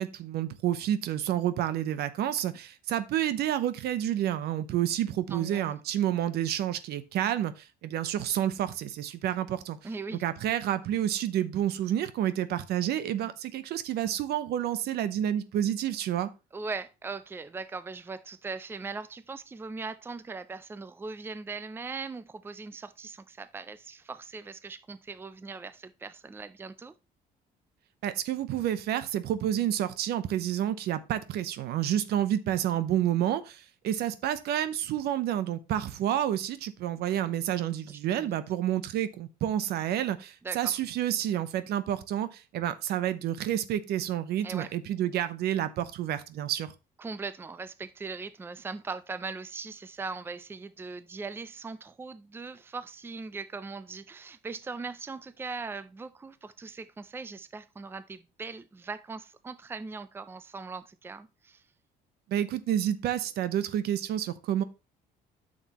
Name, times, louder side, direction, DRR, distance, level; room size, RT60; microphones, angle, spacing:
voice 1, 0.0-9.8 10.2-16.3 28.0-46.7 62.3-64.6, right 11 dB, 70° right, 0.8 m, -29 dB
voice 2, 5.3-5.7 9.8-10.2 16.5-26.9 37.9-38.4 40.4-40.8 44.4-44.7 47.0-61.6, right 4 dB, 15° right, 0.5 m, -40 dB
9.0 x 6.5 x 3.0 m
cardioid pair, 110°, 17 cm